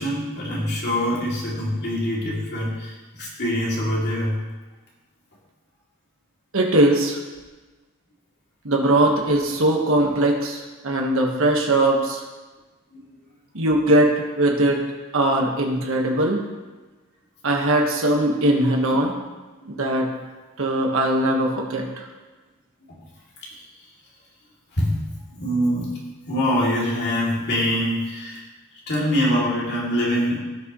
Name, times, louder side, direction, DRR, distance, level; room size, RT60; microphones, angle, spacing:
voice 1, 0.0-4.4 9.1-9.6 12.9-13.0 22.9-23.0 24.7-25.1 25.3-26.0 26.3-28.4 28.9-30.4, equal, 50° left, -5 dB, 2.7 m, -24 dB
voice 2, 6.5-7.2 8.6-12.2 13.5-14.8 15.1-16.4 17.4-19.1 19.7-20.1 20.6-22.0, right 1 dB, 65° right, 1 dB, 1.5 m, -20 dB
16.5 x 6.4 x 3.1 m, 1.2 s
head